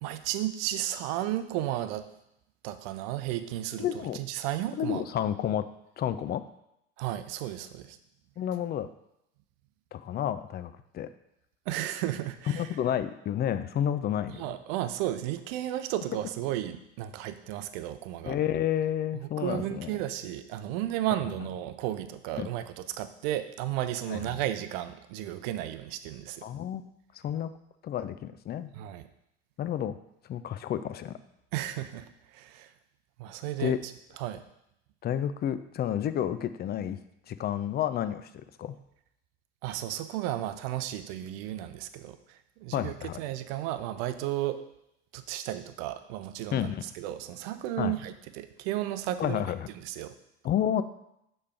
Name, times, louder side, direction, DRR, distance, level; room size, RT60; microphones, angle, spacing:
voice 1, 0.0-2.1 2.6-5.0 7.0-8.0 11.7-12.7 14.3-18.4 19.1-26.5 28.7-29.1 31.5-32.7 33.2-34.4 39.6-44.6 45.1-49.4 49.8-50.1, right 13 dB, 65° right, 11 dB, 0.6 m, -34 dB
voice 2, 3.8-4.2 4.8-5.7 6.0-6.4 8.4-8.9 9.9-11.1 12.5-14.4 18.3-19.9 22.4-22.5 24.1-24.2 26.4-26.8 27.2-27.5 27.8-28.7 29.6-30.0 30.3-31.2 33.6-33.8 35.0-37.0 37.3-38.8 42.7-43.2 46.5-46.8 47.8-48.0 49.2-49.6 50.4-50.8, left 10 dB, 30° left, 12 dB, 0.5 m, -30 dB
6.7 x 3.3 x 5.6 m, 0.80 s
hypercardioid pair, 70°, 33 cm